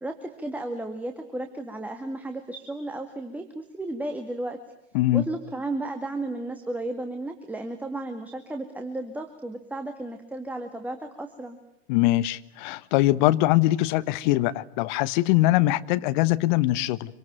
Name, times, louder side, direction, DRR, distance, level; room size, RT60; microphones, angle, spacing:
voice 1, 0.0-4.6 5.1-11.6, right 2 dB, 5° right, 2.1 m, -34 dB
voice 2, 11.9-17.2, left 16 dB, 45° left, 1.2 m, -22 dB
26.0 x 25.0 x 9.0 m
figure-of-eight pair, 100°, 32 cm